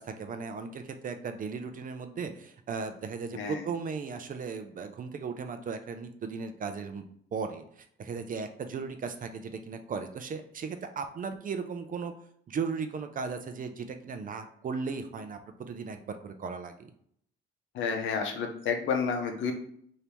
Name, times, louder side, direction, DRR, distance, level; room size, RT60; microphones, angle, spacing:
voice 1, 0.0-7.0 7.3-7.6 8.0-12.1 12.5-16.9, right 5 dB, 45° right, 8 dB, 0.5 m, -36 dB
voice 2, 3.3-3.6 17.7-19.5, left 5 dB, 75° left, 4 dB, 0.7 m, -30 dB
2.9 x 2.7 x 3.4 m, 0.66 s
cardioid pair, 90°, 20 cm